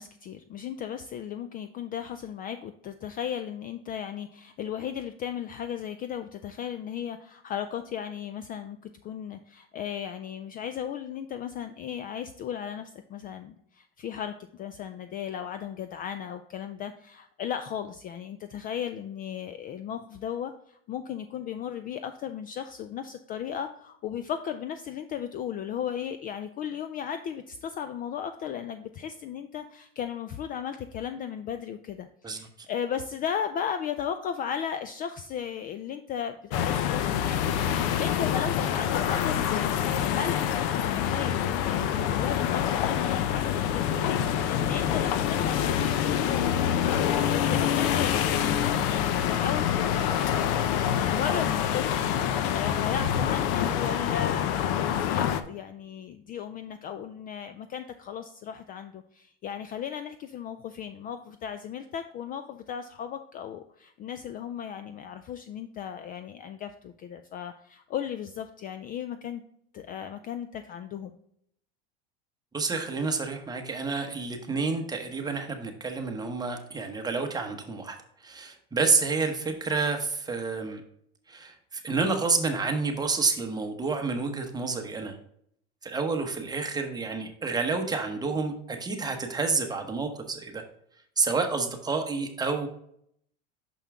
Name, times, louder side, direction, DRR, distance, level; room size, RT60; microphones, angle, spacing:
voice 1, 0.0-8.8 9.0-43.9 44.1-46.5 46.8-69.4 69.7-71.2, left 8 dB, 30° left, 9 dB, 0.3 m, -36 dB
sound 1, 36.5-55.4, left 9 dB, 65° left, 0.7 m, -26 dB
voice 2, 72.5-78.0 78.2-80.8 81.3-85.1 85.8-90.6 91.2-92.7, right 4 dB, 15° right, 4 dB, 0.9 m, -29 dB
6.0 x 5.5 x 3.5 m, 0.70 s
supercardioid pair, 125°, 30 cm